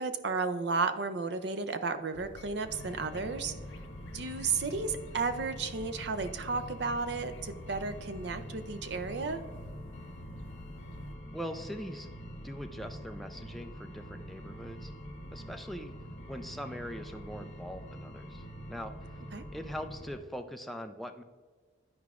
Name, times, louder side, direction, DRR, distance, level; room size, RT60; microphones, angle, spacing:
voice 1, 0.0-3.5 4.1-9.4 19.3-19.4, right 4 dB, 60° right, 10 dB, 0.5 m, -33 dB
sound 1, 2.1-11.2, left 3 dB, 70° left, 0.4 m, -50 dB
sound 2, 2.6-20.2, equal, 35° left, 1.2 m, -45 dB
voice 2, 11.3-12.1 12.4-14.9 15.3-15.9 16.3-18.9 19.5-21.2, equal, ahead, 5 dB, 0.3 m, -42 dB
11.0 x 4.6 x 2.4 m, 1.5 s
head